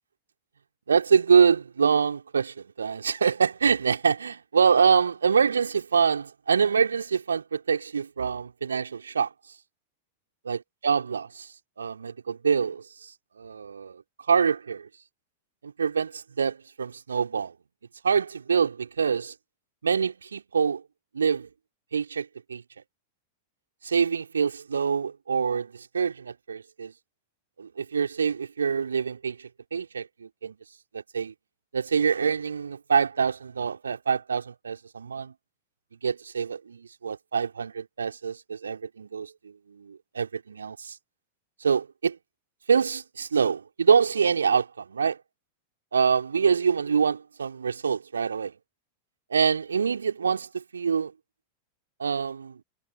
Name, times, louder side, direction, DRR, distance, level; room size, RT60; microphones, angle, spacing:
voice 1, 0.9-9.3 10.5-11.5 11.8-14.0 14.3-14.9 15.6-17.5 18.0-19.3 19.8-20.8 21.1-21.5 21.9-22.6 23.8-26.9 27.6-30.6 30.9-31.3 31.7-35.3 36.0-41.0 41.6-42.2 42.7-45.2 45.9-48.5 49.3-51.1 52.0-52.6, right 6 dB, 70° right, 3.8 m, -25 dB
figure-of-eight pair, 90°, 0 cm